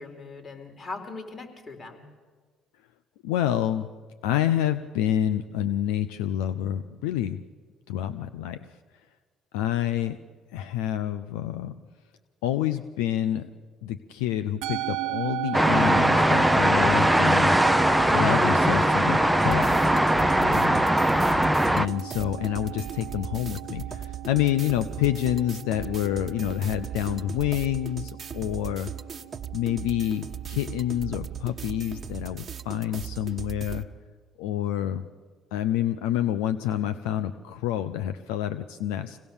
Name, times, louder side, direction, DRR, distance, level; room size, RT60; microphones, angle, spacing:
voice 1, 0.0-2.0, left 3 dB, 40° left, 4 dB, 4.0 m, -40 dB
voice 2, 3.2-3.9 4.2-7.4 7.9-8.6 9.5-10.2 10.5-11.7 12.4-13.5 13.8-17.5 18.1-19.7 20.4-20.8 21.7-28.9 29.5-33.8 34.4-35.0 35.5-39.2, left 11 dB, 90° left, 11 dB, 0.6 m, -28 dB
Musical instrument, 14.6-33.1, right 17 dB, 75° right, 0.9 m, -37 dB
sound 1, 15.5-21.9, right 1 dB, 5° right, 0.6 m, -20 dB
sound 2, 19.4-33.8, right 8 dB, 40° right, 1.1 m, -38 dB
25.0 x 17.5 x 7.2 m, 1.5 s
supercardioid pair, 70°, 0 cm